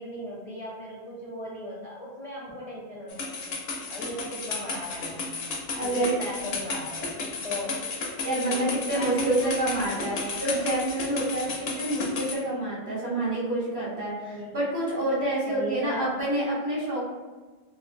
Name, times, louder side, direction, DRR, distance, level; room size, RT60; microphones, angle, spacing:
voice 1, 0.0-3.6 3.9-5.4 5.8-7.8 8.5-9.5 9.9-10.6 14.2-14.6 15.5-16.1, left 1 dB, 45° left, -6 dB, 0.5 m, -38 dB
sound 1, 3.1-12.3, left 3 dB, 75° left, 0.8 m, -33 dB
voice 2, 5.7-6.2 8.2-17.1, right 1 dB, 50° right, -8 dB, 1.4 m, -28 dB
3.1 x 2.2 x 2.5 m, 1.3 s
omnidirectional pair, 1.1 m